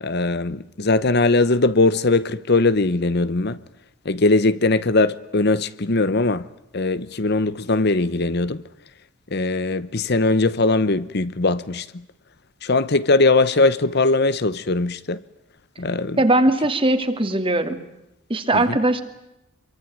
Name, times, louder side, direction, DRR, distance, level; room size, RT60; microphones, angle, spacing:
voice 1, 0.0-3.6 4.0-6.5 6.7-8.6 9.3-11.9 12.6-15.2 15.8-16.2 18.5-18.8, left 3 dB, 50° left, 1.0 m, -20 dB
voice 2, 16.2-17.8 18.3-19.0, right 1 dB, 25° right, 2.5 m, -19 dB
26.5 x 24.0 x 9.3 m
head